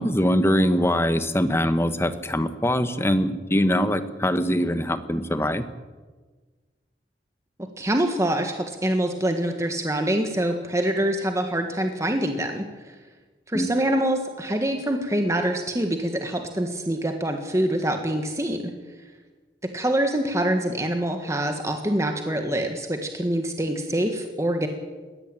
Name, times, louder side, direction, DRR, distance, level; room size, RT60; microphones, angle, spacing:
voice 1, 0.0-5.6 13.5-13.7, equal, 15° left, 10 dB, 1.2 m, -23 dB
voice 2, 7.8-12.6 13.5-18.7 19.7-24.7, right 1 dB, 15° right, 4 dB, 1.6 m, -25 dB
21.5 x 17.0 x 9.0 m, 1.3 s
head